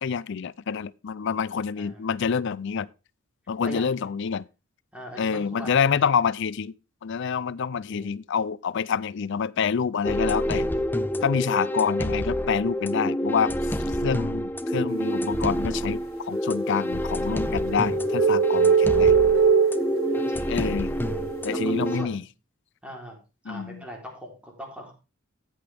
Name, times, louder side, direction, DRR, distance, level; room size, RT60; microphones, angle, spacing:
voice 1, 0.0-2.9 3.5-4.5 5.2-6.7 7.0-10.7 11.2-19.2 20.5-20.9 21.4-22.2 23.5-23.8, left 6 dB, 60° left, 0.4 m, -27 dB
voice 2, 3.6-4.0 4.9-6.2 7.9-8.2 18.4-19.3 20.3-20.7 21.5-22.3 22.8-23.2 23.4-24.9, equal, 5° right, 3.6 m, -41 dB
sound 1, 10.0-22.0, equal, 10° left, 0.5 m, -27 dB
sound 2, 17.3-22.0, right 6 dB, 80° right, 0.7 m, -22 dB
14.0 x 8.0 x 3.5 m
head